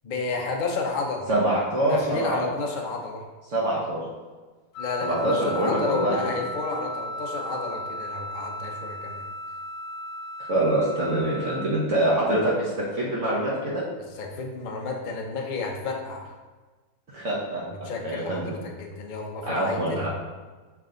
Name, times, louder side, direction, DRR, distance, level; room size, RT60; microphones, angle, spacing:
voice 1, 0.0-1.3 1.8-3.2 4.8-9.2 14.1-16.3 17.7-20.1, left 3 dB, 70° left, 1 dB, 0.4 m, -31 dB
voice 2, 1.3-2.4 3.5-4.0 5.0-6.3 10.4-13.8 17.1-18.5 19.5-20.1, right 1 dB, 50° right, -6 dB, 1.2 m, -25 dB
Wind instrument woodwind instrument, 4.7-11.7, equal, 50° left, 1.2 m, -35 dB
7.3 x 3.4 x 3.8 m, 1.3 s
omnidirectional pair, 2.0 m